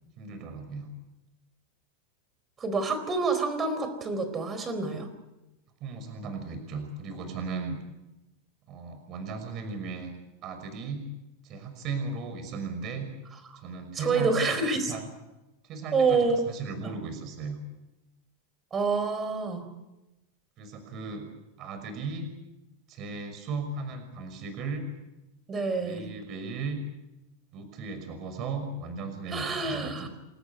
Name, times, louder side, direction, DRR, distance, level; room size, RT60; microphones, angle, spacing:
voice 1, 0.2-0.9 5.8-7.8 8.7-10.1 10.4-11.0 11.4-13.1 13.5-14.5 14.8-15.0 15.6-17.6 19.2-19.3 20.6-21.2 21.6-22.3 22.9-24.8 25.8-26.8 27.5-30.1, right 4 dB, 35° right, 7 dB, 5.9 m, -36 dB
voice 2, 2.6-5.1 13.9-14.9 15.9-16.4 18.7-19.7 25.5-26.0 29.3-30.1, right 4 dB, 20° right, 9 dB, 4.3 m, -27 dB
29.0 x 14.0 x 9.6 m, 0.98 s
supercardioid pair, 155°, 0 cm